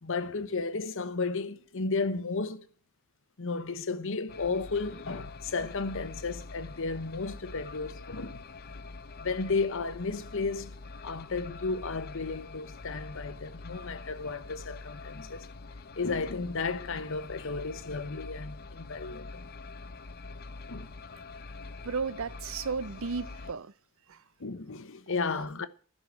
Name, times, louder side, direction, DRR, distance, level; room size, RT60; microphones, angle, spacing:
voice 1, 0.0-2.7 3.4-8.4 9.2-10.8 11.0-15.5 16.0-19.4 20.7-20.9 24.4-25.7, left 4 dB, 65° left, 1.0 m, -33 dB
sound 1, 4.3-23.5, left 3 dB, 45° left, 0.7 m, -45 dB
voice 2, 21.8-23.7 24.1-24.2 25.3-25.4, right 5 dB, 65° right, 0.6 m, -34 dB
11.5 x 6.6 x 8.8 m
head